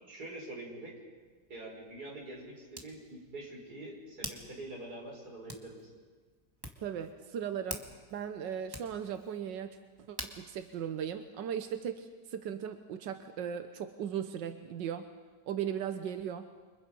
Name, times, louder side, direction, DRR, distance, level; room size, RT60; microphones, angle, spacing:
voice 1, 0.1-1.0 1.5-5.9, right 1 dB, 60° right, -1 dB, 6.0 m, -45 dB
Hands, 1.1-11.9, right 1 dB, 15° right, 1.8 m, -49 dB
voice 2, 6.8-7.8 8.1-9.8 10.1-15.1 15.5-16.5, right 8 dB, 90° right, 8 dB, 1.6 m, -37 dB
29.0 x 24.5 x 5.3 m, 1.5 s
omnidirectional pair, 1.9 m